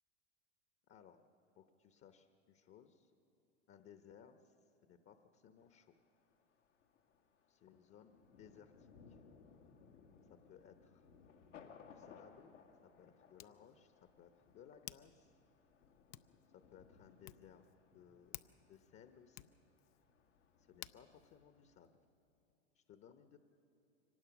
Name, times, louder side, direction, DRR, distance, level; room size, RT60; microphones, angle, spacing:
voice 1, 0.9-1.3 1.5-3.1 3.7-4.6 4.8-5.9 7.5-9.2 10.3-11.1 11.9-12.5 12.8-15.3 16.5-17.6 17.9-19.5 20.6-21.9 22.7-23.4, left 8 dB, 35° left, 8 dB, 1.1 m, -62 dB
Thunder, 5.6-21.8, left 6 dB, 85° left, 2.2 m, -64 dB
Hands, 11.8-22.5, left 15 dB, 50° left, 0.6 m, -59 dB
24.0 x 18.5 x 6.1 m, 2.8 s
hypercardioid pair, 95°, 36 cm